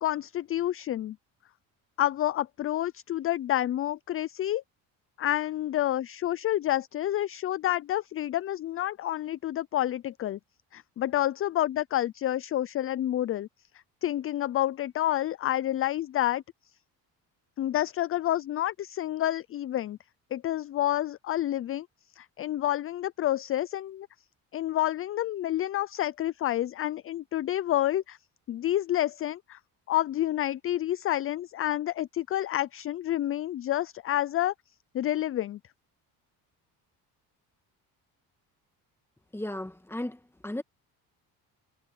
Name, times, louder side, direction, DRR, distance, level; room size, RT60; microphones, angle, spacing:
voice 1, 0.0-1.2 2.0-4.6 5.2-10.4 10.7-13.5 14.0-16.4 17.6-20.0 20.3-21.9 22.2-24.1 24.5-28.2 28.5-29.6 29.9-34.5 34.9-35.6, left 13 dB, 35° left, 0.4 m, -29 dB
voice 2, 39.3-40.6, left 1 dB, 5° left, 2.0 m, -35 dB
cardioid pair, 105°, 38 cm